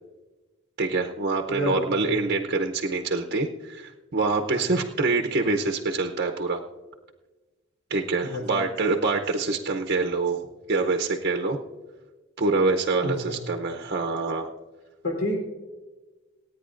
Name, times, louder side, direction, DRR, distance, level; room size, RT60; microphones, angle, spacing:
voice 1, 0.8-6.6 7.9-10.4 10.7-11.6 12.4-14.5, right 3 dB, 50° right, 3 dB, 0.7 m, -25 dB
voice 2, 1.5-2.2 4.5-4.8 8.2-8.6 13.0-13.4 15.0-15.4, left 1 dB, 80° left, 0 dB, 3.4 m, -30 dB
27.0 x 9.1 x 2.5 m, 1.2 s
head